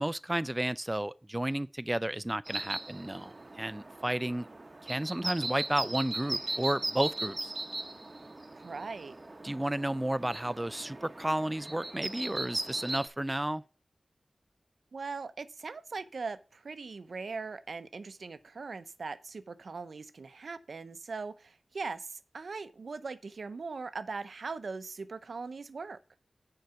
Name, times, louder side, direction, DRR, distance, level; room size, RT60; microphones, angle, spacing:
voice 1, 0.0-4.5 4.8-7.5 9.4-13.6, right 1 dB, 20° right, 0.4 m, -32 dB
sound 1, 2.5-13.1, right 2 dB, 40° right, 0.8 m, -38 dB
voice 2, 8.5-9.2 14.9-26.0, right 4 dB, 85° right, 0.6 m, -40 dB
6.5 x 4.7 x 6.8 m
wide cardioid pair, 60°, 0 cm